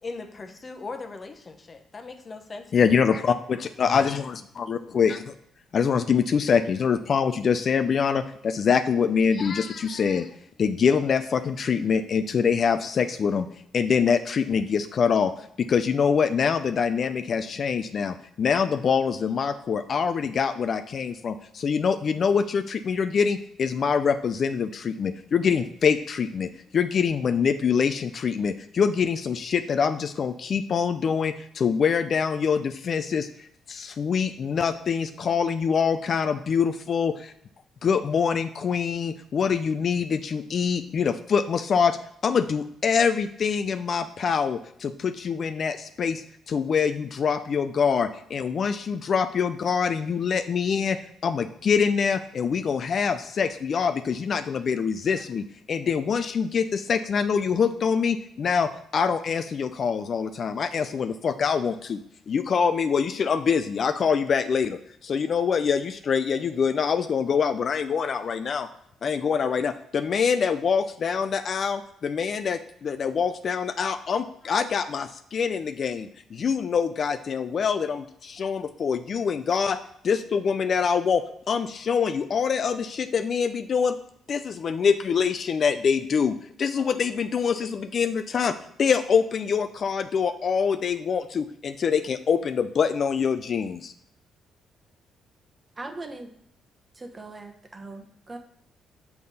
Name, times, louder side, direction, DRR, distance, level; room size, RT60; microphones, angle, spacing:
voice 1, 0.0-3.0, left 3 dB, 35° left, 6 dB, 0.9 m, -39 dB
voice 2, 2.7-5.2 5.7-10.3 10.6-13.5 13.7-15.3 15.6-37.3 37.8-42.0 42.2-62.0 62.3-68.7 69.0-79.8 80.0-83.9 84.3-93.9, left 6 dB, 50° left, 9 dB, 0.4 m, -25 dB
voice 3, 95.8-96.3 97.0-98.4, right 2 dB, 25° right, 5 dB, 1.0 m, -39 dB
6.6 x 5.5 x 4.0 m, 0.71 s
cardioid pair, 90°, 0 cm